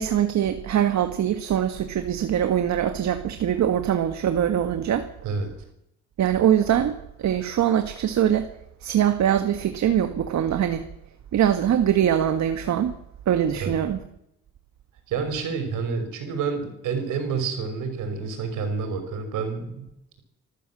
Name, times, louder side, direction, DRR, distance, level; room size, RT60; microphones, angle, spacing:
voice 1, 0.0-5.1 6.2-8.5 8.8-10.9 11.3-12.9 13.3-14.0, right 10 dB, 65° right, 8 dB, 1.7 m, -23 dB
voice 2, 15.1-19.8, right 5 dB, 85° right, 6 dB, 6.1 m, -28 dB
27.0 x 13.5 x 7.5 m, 0.83 s
cardioid pair, 90°, 30 cm